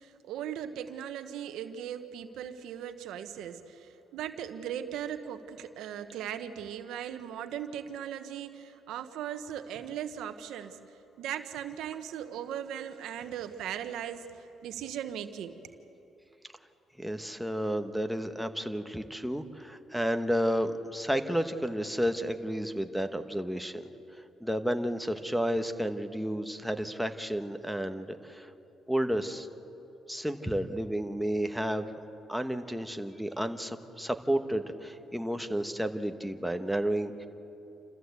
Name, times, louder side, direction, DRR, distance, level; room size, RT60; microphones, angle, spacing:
voice 1, 0.0-10.8 11.2-15.6, right 9 dB, 85° right, 9 dB, 1.1 m, -38 dB
voice 2, 17.0-23.8 24.4-28.5 28.9-29.5 30.1-31.8 32.3-37.3, equal, ahead, 7 dB, 1.2 m, -31 dB
28.0 x 14.0 x 8.2 m, 2.9 s
cardioid pair, 90°, 0 cm